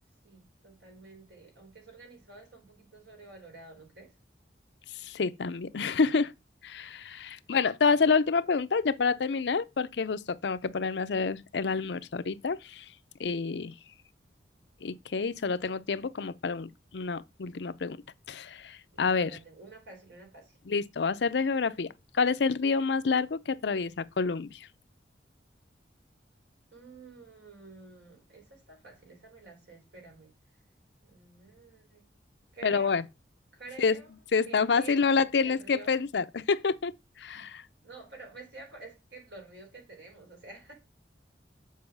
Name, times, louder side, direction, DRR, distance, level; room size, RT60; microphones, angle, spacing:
voice 1, 0.2-4.1 7.9-8.1 18.9-20.6 26.7-30.3 31.0-32.0 32.5-33.1 33.5-34.1 34.5-35.0 35.4-36.0 37.8-40.7, right 3 dB, 80° right, 4.0 m, -49 dB
voice 2, 5.0-6.3 6.6-12.8 13.2-13.7 14.8-18.0 18.3-19.3 20.7-21.9 22.1-24.7 32.6-33.0 33.8-34.0 34.3-36.9 37.2-37.6, left 5 dB, 70° left, 0.5 m, -28 dB
7.5 x 4.8 x 5.7 m
head